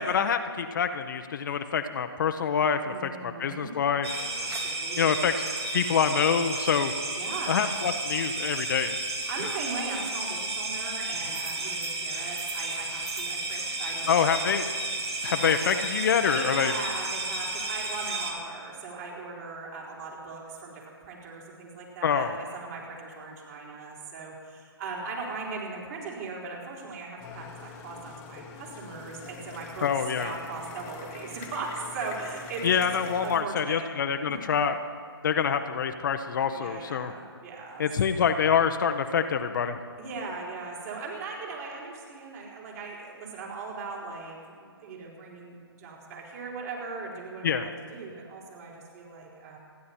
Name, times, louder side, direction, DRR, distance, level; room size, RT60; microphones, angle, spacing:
voice 1, 0.0-4.1 5.0-5.3 5.7-6.9 7.5-9.0 14.1-14.7 15.2-16.7 22.0-22.4 29.8-30.3 32.6-34.8 35.2-37.1 37.8-39.8 47.4-47.7, left 7 dB, 50° left, 7 dB, 1.0 m, -26 dB
voice 2, 2.8-3.7 4.4-5.4 7.1-7.6 9.3-14.1 14.6-14.7 15.2-15.7 16.3-29.9 30.2-32.8 33.2-33.9 34.3-34.4 36.5-37.9 40.0-49.6, right 4 dB, 40° right, -3 dB, 4.5 m, -39 dB
sound 1, 4.0-18.3, right 2 dB, 70° right, 3.2 m, -32 dB
sound 2, 27.2-33.4, left 7 dB, 25° left, 1.3 m, -45 dB
28.5 x 11.0 x 4.4 m, 2.1 s
figure-of-eight pair, 140°, 14 cm